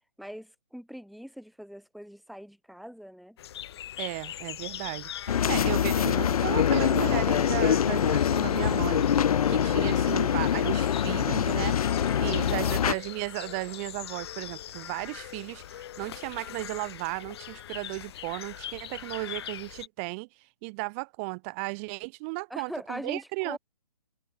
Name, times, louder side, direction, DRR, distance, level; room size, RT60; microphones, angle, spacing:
voice 1, 0.2-3.4 12.2-12.8 22.5-23.6, equal, ahead, 1.1 m, -42 dB
sound 1, 3.4-19.9, left 11 dB, 40° left, 7.2 m, -42 dB
voice 2, 4.0-20.3 20.6-23.6, right 31 dB, 20° right, 0.9 m, -35 dB
sound 2, 5.3-13.0, left 9 dB, 70° left, 0.5 m, -24 dB
hypercardioid pair, 155°, 19 cm